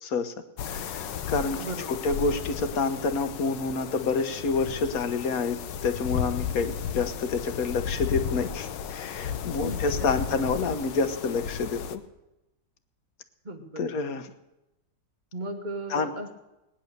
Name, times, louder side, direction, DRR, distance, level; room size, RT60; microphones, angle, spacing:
voice 1, 0.0-0.3 0.7-5.6 5.8-12.0 13.8-14.3 15.9-16.1, left 4 dB, 55° left, 9 dB, 1.4 m, -28 dB
sound 1, 0.6-12.0, left 8 dB, 85° left, 1.5 m, -34 dB
voice 2, 1.6-1.9 9.6-10.1 13.4-14.0 15.3-16.3, right 2 dB, 30° right, 5 dB, 1.3 m, -36 dB
19.0 x 10.0 x 6.7 m, 0.96 s
omnidirectional pair, 1.9 m